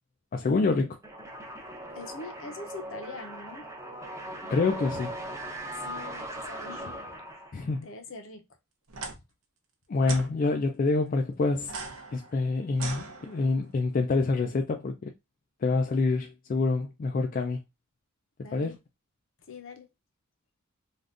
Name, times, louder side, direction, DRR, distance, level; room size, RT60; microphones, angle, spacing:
voice 1, 0.3-1.0 4.5-5.1 7.5-7.9 9.9-11.7 12.1-15.1 15.6-17.6 18.5-18.7, left 3 dB, 40° left, 0.3 m, -26 dB
sound 1, 1.0-7.8, right 1 dB, 15° right, 0.7 m, -39 dB
voice 2, 1.9-3.7 5.7-7.0 7.3-7.4 7.8-8.5 9.1-9.2 18.4-18.8 19.5-19.9, left 3 dB, 65° left, 0.7 m, -43 dB
sound 2, 8.9-9.1 10.0-10.3 11.6-13.6, right 4 dB, 80° right, 0.7 m, -39 dB
3.5 x 2.4 x 2.4 m
head